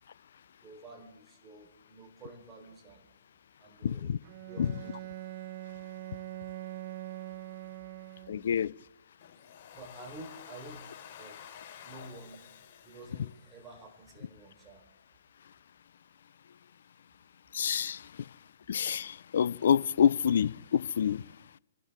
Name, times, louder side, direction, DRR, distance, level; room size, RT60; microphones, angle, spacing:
voice 1, 0.6-3.1 3.6-4.1 4.5-5.1 9.7-11.4 11.8-12.4 12.8-14.9, right 2 dB, 20° right, 3.9 m, -50 dB
voice 2, 3.8-4.2 4.6-4.7 8.3-8.7 17.5-18.0 18.7-21.2, left 8 dB, 65° left, 0.4 m, -27 dB
Bowed string instrument, 4.2-8.7, right 16 dB, 50° right, 0.5 m, -43 dB
Domestic sounds home sounds, 9.2-14.2, left 9 dB, 45° left, 4.5 m, -51 dB
28.0 x 12.5 x 3.6 m
hypercardioid pair, 125°, 0 cm